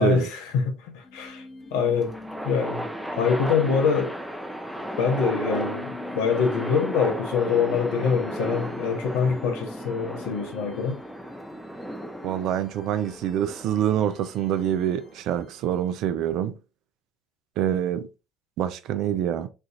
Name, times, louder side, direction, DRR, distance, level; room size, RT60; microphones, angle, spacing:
voice 1, 0.0-2.2 2.4-2.9 3.2-4.2 5.0-11.0, left 6 dB, 75° left, 0.7 m, -25 dB
sound 1, 1.0-16.1, left 3 dB, 35° left, 0.9 m, -46 dB
sound 2, 1.8-15.2, equal, ahead, 0.7 m, -35 dB
voice 2, 12.2-16.6 17.6-18.1 18.6-19.5, right 10 dB, 65° right, 0.4 m, -26 dB
4.4 x 2.5 x 2.4 m
hypercardioid pair, 55°, 0 cm